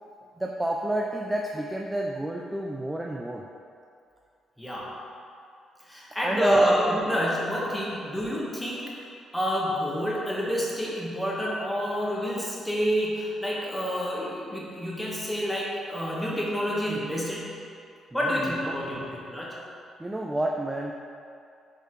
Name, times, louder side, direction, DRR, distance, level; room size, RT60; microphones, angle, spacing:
voice 1, 0.4-3.5 6.2-6.7 18.1-19.1 20.0-20.9, right 1 dB, 10° right, 0 dB, 0.4 m, -28 dB
voice 2, 4.6-4.9 5.8-8.8 9.3-17.5 18.1-19.5, equal, 5° left, -5 dB, 1.4 m, -28 dB
5.4 x 4.0 x 4.6 m, 2.5 s
cardioid pair, 90°, 0 cm